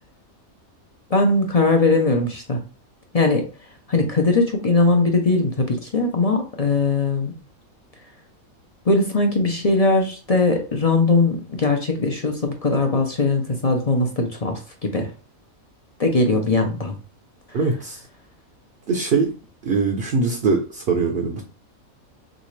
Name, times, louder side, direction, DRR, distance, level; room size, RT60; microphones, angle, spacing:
voice 1, 1.1-2.6 3.1-3.4 3.9-7.3 8.9-15.1 16.0-16.9, left 3 dB, 35° left, 3 dB, 0.6 m, -20 dB
voice 2, 17.5-18.0 18.9-19.3 19.6-21.4, right 4 dB, 50° right, 3 dB, 0.8 m, -22 dB
6.3 x 2.5 x 3.2 m, 0.36 s
omnidirectional pair, 1.5 m